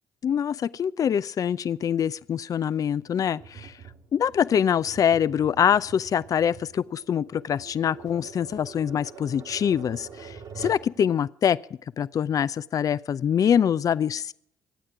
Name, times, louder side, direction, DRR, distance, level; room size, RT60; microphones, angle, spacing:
voice 1, 0.2-3.7 4.1-11.6 12.0-14.3, left 8 dB, 50° left, 18 dB, 0.6 m, -24 dB
Tap, 3.4-10.9, right 6 dB, 70° right, 3.8 m, -45 dB
26.0 x 8.8 x 4.8 m, 0.66 s
hypercardioid pair, 60°, 8 cm